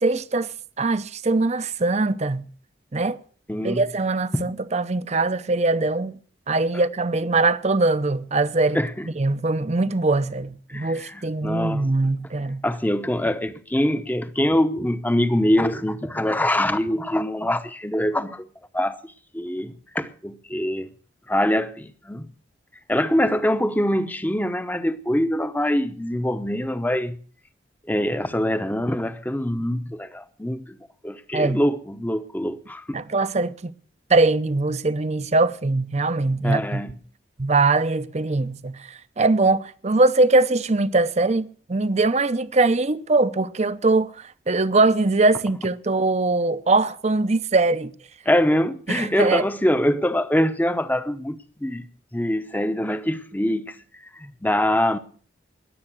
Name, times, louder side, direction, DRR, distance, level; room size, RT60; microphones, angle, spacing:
voice 1, 0.0-0.5 0.8-2.5 2.9-3.2 3.6-6.2 6.5-8.8 9.2-12.6 31.3-31.6 32.9-33.7 34.1-36.8 37.4-47.9 48.9-49.5, right 3 dB, 35° right, 0.7 m, -22 dB
voice 2, 3.5-3.8 4.3-4.4 8.7-9.1 10.7-11.9 12.6-18.5 18.7-19.0 19.3-20.9 21.3-22.3 22.9-27.2 27.9-30.8 31.0-33.0 36.4-37.0 48.2-55.0, left 1 dB, 10° left, 0.9 m, -24 dB
20.5 x 7.8 x 6.2 m
head